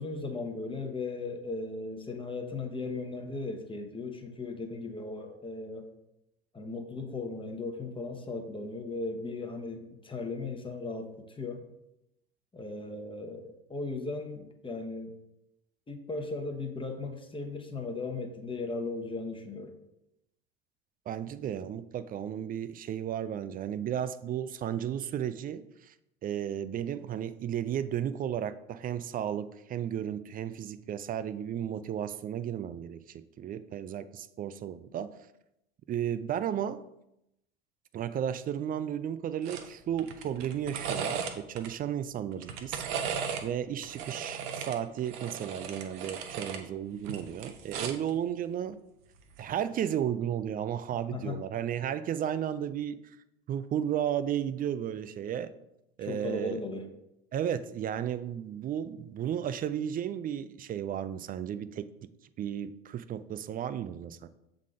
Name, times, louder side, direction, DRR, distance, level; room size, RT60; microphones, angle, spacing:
voice 1, 0.0-5.9 6.5-11.6 12.5-15.1 15.9-19.8 51.1-51.4 56.0-56.9, left 3 dB, 15° left, 3 dB, 1.0 m, -37 dB
voice 2, 21.1-25.9 26.2-35.2 35.9-36.8 37.9-48.8 49.4-53.0 53.5-55.5 56.0-56.6 57.3-62.1 62.4-64.3, right 9 dB, 30° right, 14 dB, 0.4 m, -34 dB
sound 1, 39.4-39.7 40.0-41.7 42.3-43.5 43.8-46.6 47.0-48.1 49.3-49.5, right 6 dB, 65° right, 0.9 m, -36 dB
7.3 x 3.8 x 3.7 m, 0.84 s
hypercardioid pair, 75°, 30 cm